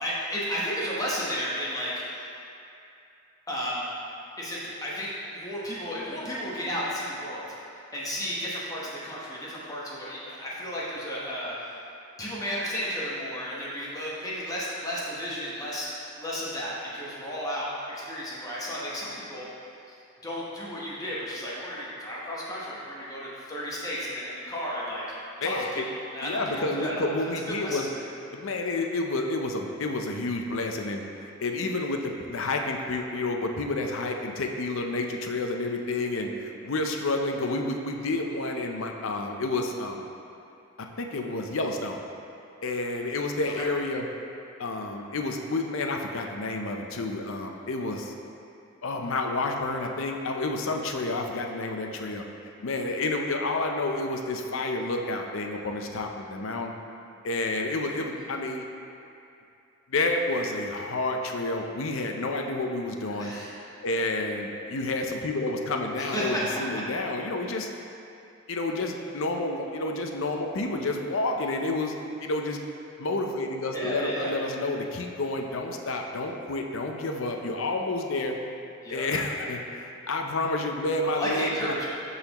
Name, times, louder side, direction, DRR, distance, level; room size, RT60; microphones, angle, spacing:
voice 1, 0.0-2.3 3.5-3.9 4.4-7.4 7.7-11.7 12.2-17.7 18.0-19.5 20.2-25.0 25.4-27.1 27.6-27.8 43.6-43.7 58.1-58.3 63.2-63.5 66.0-66.4 73.7-74.4 78.8-79.1 81.0-81.9, equal, 15° left, -7 dB, 0.9 m, -33 dB
voice 2, 25.4-25.8 26.2-27.9 28.3-40.0 40.8-42.0 42.6-44.0 44.6-48.1 48.8-56.7 57.2-58.6 59.9-63.3 63.8-67.7 68.5-71.9 72.2-72.6 73.0-78.4 78.9-81.8, left 2 dB, 65° left, 3 dB, 0.6 m, -30 dB
12.0 x 4.1 x 3.0 m, 2.6 s
head